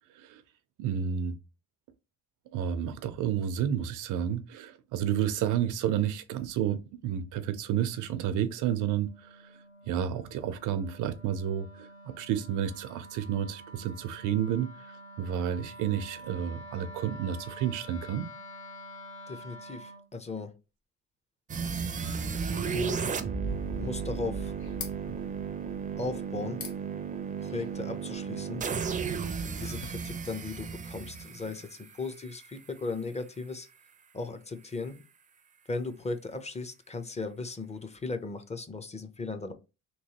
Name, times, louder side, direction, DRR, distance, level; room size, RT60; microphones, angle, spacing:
voice 1, 0.8-1.4 2.5-9.5 9.8-18.3, right 9 dB, 85° right, 0.5 m, -31 dB
Wind instrument woodwind instrument, 7.1-20.1, equal, 40° left, 1.4 m, -48 dB
voice 2, 19.3-20.5 22.7-23.0 23.8-24.5 26.0-26.6 27.4-28.7 29.6-33.7 34.1-35.0 35.7-39.5, left 3 dB, 20° left, 0.6 m, -37 dB
sound 1, 21.5-32.5, right 6 dB, 25° right, 0.4 m, -34 dB
sound 2, 23.5-30.0, left 6 dB, 75° left, 1.0 m, -49 dB
3.1 x 3.0 x 2.8 m
cardioid pair, 90°, 30 cm